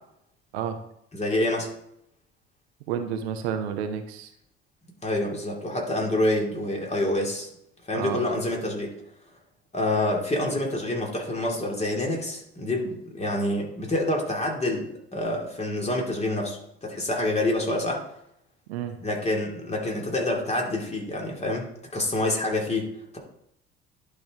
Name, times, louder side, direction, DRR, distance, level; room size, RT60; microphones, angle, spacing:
voice 1, 1.1-1.7 5.0-7.5 7.9-8.9 9.7-18.0 19.0-21.7 21.9-23.2, left 1 dB, 20° left, -1 dB, 2.4 m, -27 dB
voice 2, 2.9-4.3 7.9-8.3 18.7-19.0, right 8 dB, 70° right, 7 dB, 0.8 m, -30 dB
11.0 x 4.8 x 3.6 m, 0.76 s
figure-of-eight pair, 55°, 34 cm